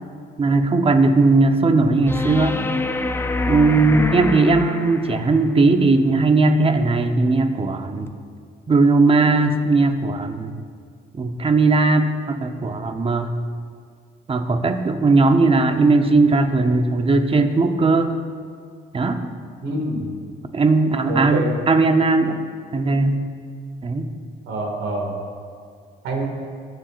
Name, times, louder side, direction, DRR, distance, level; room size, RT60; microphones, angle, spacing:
voice 1, 0.4-2.6 3.5-8.1 8.7-10.5 11.1-13.3 14.3-18.1 18.9-19.3 20.5-22.5 22.7-23.2 23.8-24.1, right 3 dB, 30° right, 7 dB, 0.8 m, -18 dB
sound 1, 2.1-5.4 8.1-8.2, left 2 dB, 10° left, 0.4 m, -26 dB
voice 2, 19.6-20.1 21.1-21.5 24.5-25.1 26.0-26.2, right 1 dB, 90° right, -1 dB, 2.1 m, -26 dB
20.5 x 7.4 x 2.5 m, 2.1 s
cardioid pair, 90°, 20 cm